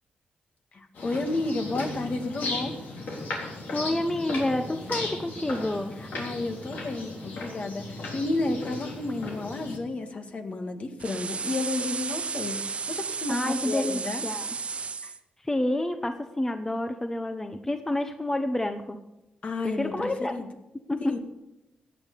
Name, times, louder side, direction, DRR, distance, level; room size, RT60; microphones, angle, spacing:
voice 1, 0.7-2.7 6.0-12.6 12.9-14.2 15.0-15.1 19.4-20.5 21.1-21.2, left 2 dB, 50° left, 5 dB, 2.0 m, -32 dB
sound 1, 1.0-9.8, left 2 dB, 80° left, 3.6 m, -36 dB
voice 2, 3.7-5.9 13.3-14.5 15.4-19.0 19.6-20.3 20.9-21.2, left 1 dB, 15° left, 7 dB, 1.0 m, -29 dB
sound 2, 11.0-15.2, right 5 dB, 45° right, 0.8 m, -33 dB
15.5 x 9.2 x 6.8 m, 0.93 s
cardioid pair, 85°, 3 cm